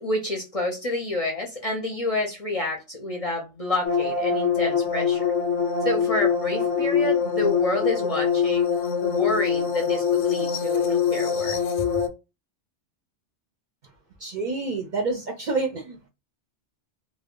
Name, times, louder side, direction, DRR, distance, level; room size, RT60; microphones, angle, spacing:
voice 1, 0.0-5.2 5.8-8.7 9.0-11.6, left 1 dB, 40° left, 0.5 m, -28 dB
sound 1, 3.8-12.1, left 7 dB, 90° left, 0.9 m, -24 dB
voice 2, 14.2-16.1, right 3 dB, 55° right, 0.6 m, -28 dB
2.2 x 2.1 x 3.5 m
omnidirectional pair, 1.2 m